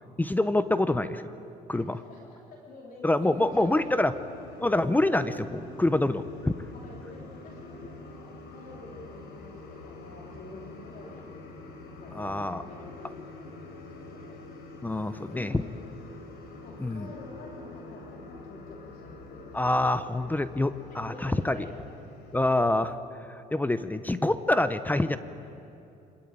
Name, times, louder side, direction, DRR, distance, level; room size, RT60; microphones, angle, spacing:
voice 1, 0.2-1.3 1.7-2.0 3.0-4.1 4.6-6.5 12.1-12.6 14.8-15.5 16.8-17.1 19.5-21.6 22.3-22.9 23.5-25.2, left 1 dB, 10° left, 12 dB, 0.8 m, -26 dB
voice 2, 1.7-3.9 6.7-11.3 11.9-14.3 15.1-15.7 16.6-19.6 20.9-21.8, left 3 dB, 55° left, -2 dB, 3.3 m, -48 dB
sound 1, 3.3-22.6, left 2 dB, 80° left, 4.6 m, -46 dB
25.0 x 20.5 x 9.0 m, 2.7 s
cardioid pair, 110°, 17 cm